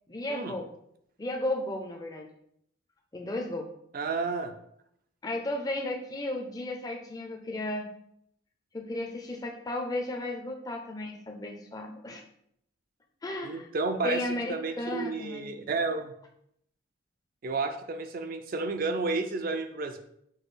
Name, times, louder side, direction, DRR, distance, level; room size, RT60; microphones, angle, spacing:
voice 1, 0.1-0.7 1.2-2.3 3.1-3.7 5.2-7.9 8.7-12.2 13.2-13.7 14.0-15.5, left 1 dB, 20° left, 2 dB, 0.4 m, -34 dB
voice 2, 3.9-4.5 13.4-14.2 14.5-16.1 17.4-20.0, right 3 dB, 45° right, 8 dB, 0.4 m, -31 dB
6.1 x 2.3 x 3.2 m, 0.72 s
head